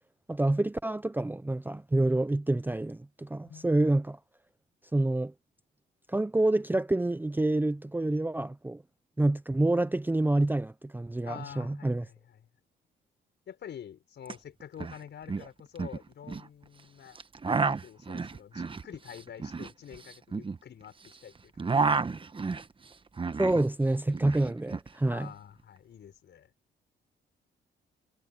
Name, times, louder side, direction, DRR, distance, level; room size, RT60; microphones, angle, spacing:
voice 1, 0.3-4.2 4.9-5.3 6.1-8.8 9.2-12.0 23.4-25.3, right 2 dB, 10° right, 0.6 m, -27 dB
voice 2, 11.2-12.4 13.5-21.9 25.0-26.5, left 9 dB, 60° left, 5.8 m, -47 dB
sound 1, 14.2-14.3 14.6-15.0 15.3-16.5 17.1-21.1 21.4-23.7 23.9-24.9, right 4 dB, 25° right, 1.2 m, -31 dB
cardioid pair, 90°, 20 cm